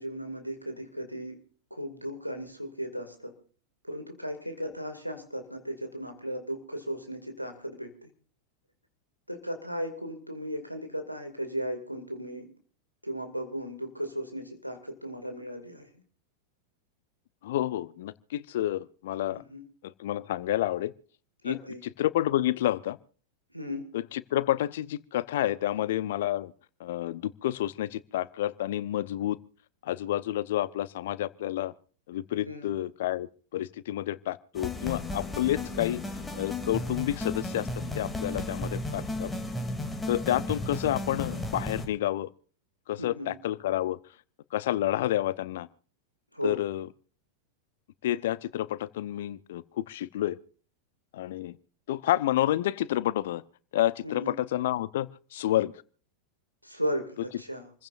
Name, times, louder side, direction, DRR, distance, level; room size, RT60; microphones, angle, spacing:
voice 1, 0.0-1.4 1.7-3.3 3.8-8.1 9.3-12.5 13.0-15.9 19.3-19.6 21.4-21.8 23.5-23.8 32.4-32.7 43.0-43.3 46.3-46.6 54.0-54.3 56.6-57.7, equal, 90° right, 2.3 m, -36 dB
voice 2, 17.4-19.4 19.8-20.9 21.4-21.6 22.0-23.0 23.9-26.5 26.8-29.4 29.8-31.7 32.1-36.0 36.3-37.7 37.9-39.3 40.1-42.3 42.9-44.0 44.5-45.7 46.4-46.9 48.0-50.4 51.1-51.6 51.9-53.4 53.7-55.7, left 13 dB, 55° left, 0.7 m, -29 dB
sound 1, 34.5-41.9, left 2 dB, 10° left, 2.7 m, -34 dB
28.0 x 15.5 x 2.6 m
figure-of-eight pair, 90°, 0 cm